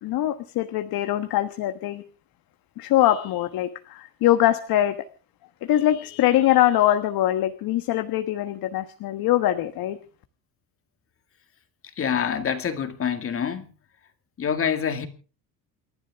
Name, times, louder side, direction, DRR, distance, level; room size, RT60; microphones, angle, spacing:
voice 1, 0.0-2.0 2.8-5.0 5.6-10.0, left 13 dB, 65° left, 1.4 m, -22 dB
voice 2, 12.0-13.7 14.4-15.1, left 7 dB, 35° left, 2.2 m, -26 dB
29.0 x 11.5 x 3.6 m
cardioid pair, 130°, 39 cm